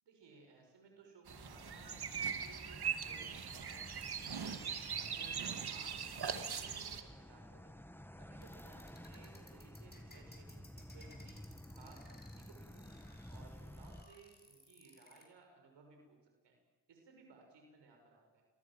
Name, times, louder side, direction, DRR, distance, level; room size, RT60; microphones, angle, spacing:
voice 1, 0.0-5.4 5.7-7.8 8.2-13.0 13.3-16.6 16.9-18.5, right 4 dB, 80° right, 3 dB, 6.1 m, -61 dB
sound 1, 1.3-14.0, equal, 5° left, 2.1 m, -53 dB
sound 2, 1.3-7.0, right 7 dB, 65° right, 2.4 m, -41 dB
sound 3, 8.4-15.2, left 1 dB, 25° left, 7.4 m, -61 dB
29.5 x 22.5 x 7.5 m, 1.2 s
supercardioid pair, 40°, 42 cm